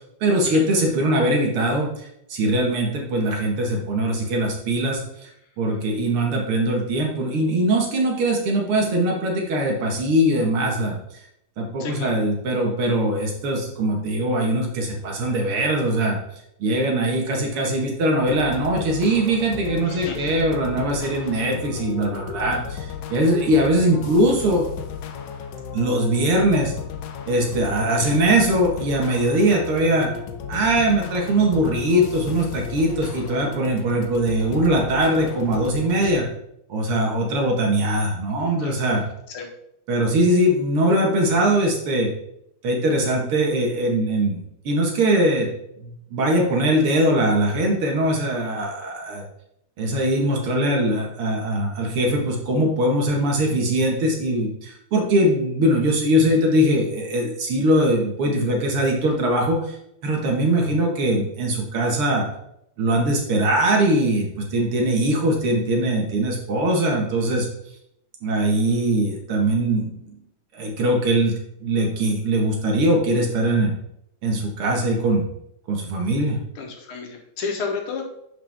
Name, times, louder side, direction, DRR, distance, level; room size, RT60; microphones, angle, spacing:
voice 1, 0.2-5.3 5.6-11.0 11.6-16.2 16.6-24.7 25.7-26.7 27.3-30.1 30.5-36.3 36.7-39.0 39.9-42.1 42.6-45.5 45.8-49.2 49.8-59.8 60.0-62.3 62.8-67.5 68.2-70.2 70.5-71.3 71.6-73.7 74.2-75.3 75.7-76.4, right 1 dB, 80° right, 0 dB, 2.5 m, -21 dB
voice 2, 11.8-12.2 19.8-20.3 38.3-38.7 39.3-39.5 76.6-78.0, left 5 dB, 90° left, 2 dB, 2.3 m, -32 dB
sound 1, 18.2-36.2, left 7 dB, 65° left, 1.2 m, -34 dB
10.5 x 4.9 x 3.6 m, 0.78 s
omnidirectional pair, 2.4 m